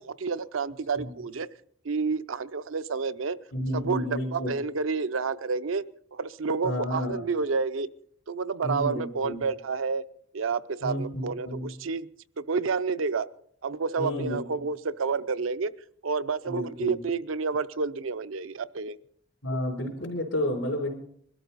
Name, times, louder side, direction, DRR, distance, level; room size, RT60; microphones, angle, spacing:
voice 1, 0.0-1.5 1.8-3.4 3.7-7.9 8.3-10.1 10.3-12.1 12.4-13.3 13.6-15.7 16.0-19.0, right 4 dB, 85° right, 13 dB, 0.6 m, -29 dB
voice 2, 3.5-4.5 6.6-7.2 8.6-9.4 10.8-11.7 14.0-14.4 16.5-17.0 19.4-20.9, left 1 dB, 85° left, -5 dB, 3.5 m, -31 dB
21.5 x 13.0 x 4.1 m, 0.64 s
head